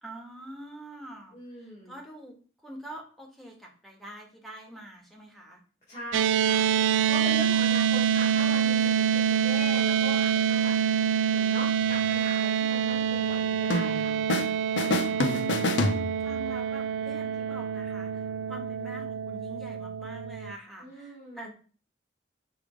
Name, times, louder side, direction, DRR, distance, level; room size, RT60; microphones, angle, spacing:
voice 1, 0.0-1.4 1.6-5.6 14.8-21.5, right 1 dB, ahead, -1 dB, 1.4 m, -45 dB
voice 2, 1.3-1.9 5.9-6.6 7.1-10.8 11.1-14.1 20.8-21.5, left 1 dB, 40° left, -8 dB, 3.2 m, -40 dB
sound 1, 6.1-20.5, right 8 dB, 90° right, 0.3 m, -26 dB
sound 2, 13.7-14.5 14.8-16.5, left 2 dB, 80° left, 0.7 m, -28 dB
6.7 x 3.4 x 5.0 m, 0.40 s
head